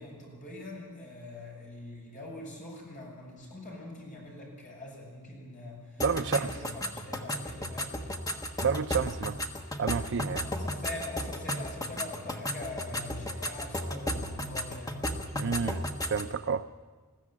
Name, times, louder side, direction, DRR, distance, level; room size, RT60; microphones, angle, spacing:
voice 1, 0.0-8.0 10.4-15.1, left 2 dB, 35° left, 7.0 m, -43 dB
sound 1, 6.0-16.3, left 1 dB, 15° left, 1.4 m, -35 dB
voice 2, 6.0-6.5 8.6-9.4 9.8-10.5 15.3-16.6, right 6 dB, 55° right, 0.5 m, -30 dB
21.0 x 15.0 x 8.6 m
head